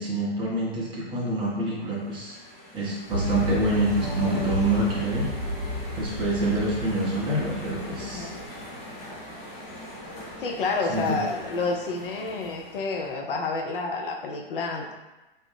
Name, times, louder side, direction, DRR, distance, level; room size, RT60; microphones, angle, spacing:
voice 1, 0.0-2.4 2.7-5.3 6.0-8.3 10.9-11.2, right 1 dB, 15° right, -5 dB, 0.6 m, -26 dB
sound 1, 1.8-13.1, equal, 45° left, 1.1 m, -43 dB
sound 2, 3.1-9.1, equal, 35° right, 1.1 m, -32 dB
sound 3, 6.8-12.8, left 1 dB, 20° left, 0.7 m, -45 dB
voice 2, 8.0-8.4 10.4-14.9, left 3 dB, 60° left, 1 dB, 0.5 m, -29 dB
2.6 x 2.0 x 3.3 m, 1.1 s
figure-of-eight pair, 115°, 30 cm